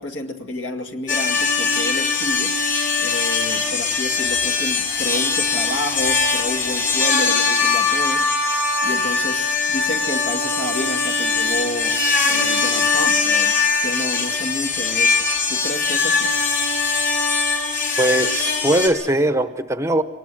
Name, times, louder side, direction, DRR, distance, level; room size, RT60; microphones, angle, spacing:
voice 1, 0.0-2.6 3.0-8.3 8.8-12.0 12.3-16.3, left 1 dB, 60° left, 5 dB, 2.2 m, -30 dB
sound 1, 1.1-18.9, left 4 dB, 40° left, 5.3 m, -21 dB
voice 2, 18.0-20.0, right 1 dB, 15° right, 9 dB, 0.8 m, -20 dB
24.0 x 20.0 x 7.8 m, 1.2 s
head